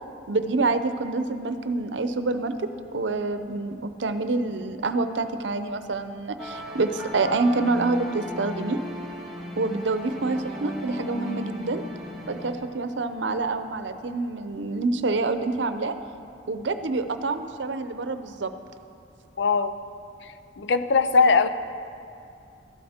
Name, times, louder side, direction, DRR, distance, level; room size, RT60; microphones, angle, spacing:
voice 1, 0.3-8.8 9.6-11.8 12.3-15.9 16.5-18.5, right 3 dB, 90° right, 10 dB, 0.7 m, -27 dB
sound 1, 6.4-12.5, equal, ahead, 2.3 m, -36 dB
voice 2, 19.4-19.8 20.6-21.5, left 4 dB, 75° left, 11 dB, 0.6 m, -20 dB
13.0 x 12.0 x 4.3 m, 2.5 s
head